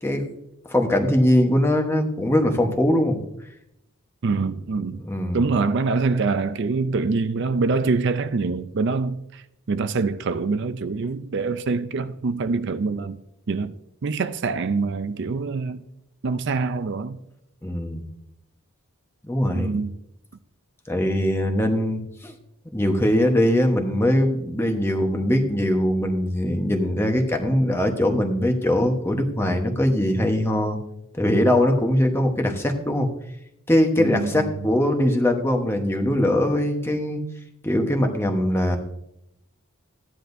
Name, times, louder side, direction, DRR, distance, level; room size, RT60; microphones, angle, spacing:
voice 1, 0.7-3.2 5.0-5.4 17.6-18.0 19.2-19.7 20.9-22.3 22.7-30.8 31.2-33.1 33.7-37.2 37.6-38.8, left 1 dB, 10° left, 1.1 m, -21 dB
voice 2, 4.2-5.0 5.3-13.2 13.5-13.7 14.0-15.8 16.2-17.2 19.5-19.9 34.0-34.5, right 4 dB, 55° right, 0.5 m, -25 dB
14.0 x 10.0 x 2.7 m
head